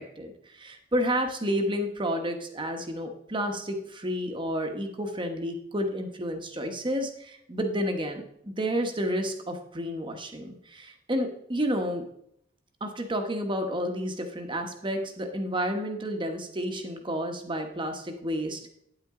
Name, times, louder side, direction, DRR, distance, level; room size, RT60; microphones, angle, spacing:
voice 1, 0.0-12.1 12.8-18.7, equal, 25° right, 5 dB, 1.1 m, -30 dB
9.4 x 8.6 x 3.7 m, 0.71 s
head